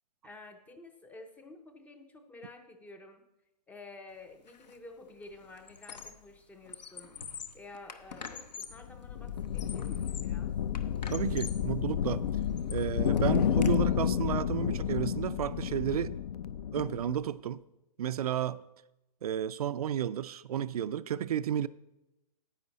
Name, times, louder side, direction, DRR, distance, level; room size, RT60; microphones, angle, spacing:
voice 1, 0.2-3.2 3.7-7.2 7.5-10.5, left 2 dB, 5° left, 0.5 m, -51 dB
Squeak, 4.5-4.8 5.1-6.3 6.6-8.9 9.4-10.4 10.7-11.7 12.2-13.7, left 6 dB, 80° left, 0.9 m, -46 dB
sound 1, 8.7-17.2, left 9 dB, 60° left, 0.5 m, -31 dB
voice 2, 11.1-12.3 12.7-16.1 16.7-17.6 18.0-18.6 19.2-21.7, right 10 dB, 60° right, 0.4 m, -32 dB
9.9 x 8.6 x 4.0 m
hypercardioid pair, 140°, 21 cm